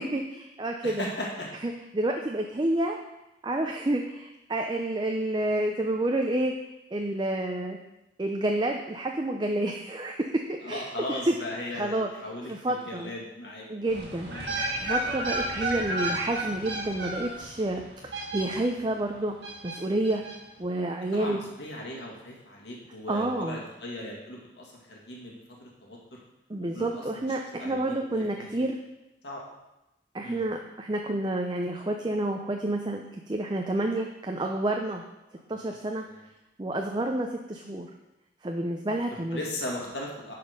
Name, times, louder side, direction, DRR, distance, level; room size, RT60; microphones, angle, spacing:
voice 1, 0.0-1.1 1.6-3.0 3.4-6.6 6.9-7.8 8.2-11.4 11.7-12.1 12.4-13.1 13.7-14.4 14.7-19.4 19.6-20.2 20.6-21.4 23.1-23.6 26.5-28.8 30.1-35.0 35.5-36.0 36.6-37.9 38.4-39.4, right 1 dB, 25° right, 2 dB, 0.5 m, -29 dB
voice 2, 0.8-1.5 10.6-13.7 14.3-14.6 21.1-26.2 26.7-27.2 27.6-28.7 29.2-29.4 30.2-30.4 35.5-35.6 39.1-40.3, left 1 dB, 80° left, -2 dB, 2.1 m, -38 dB
sound 1, 13.9-18.9 19.4-20.4 20.6-20.7, right 1 dB, 75° right, 1.6 m, -32 dB
11.0 x 4.3 x 5.1 m, 0.95 s
head